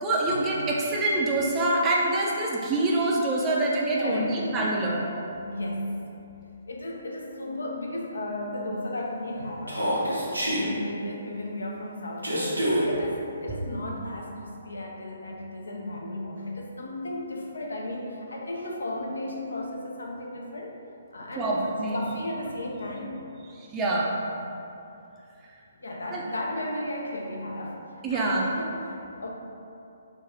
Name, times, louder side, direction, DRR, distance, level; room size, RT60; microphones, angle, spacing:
voice 1, 0.0-5.0 21.4-22.0 23.6-24.1 26.1-26.2 28.0-28.5, right 2 dB, 15° right, -4 dB, 0.4 m, -25 dB
voice 2, 4.0-4.4 5.4-6.0 6.7-9.9 10.6-20.7 21.1-23.2 25.8-27.8 28.1-29.3, left 1 dB, 65° left, -1 dB, 0.5 m, -34 dB
Human voice, 9.7-10.6 12.2-12.9, equal, 85° right, 0.8 m, -26 dB
3.5 x 2.2 x 3.6 m, 2.7 s
figure-of-eight pair, 130°, 0 cm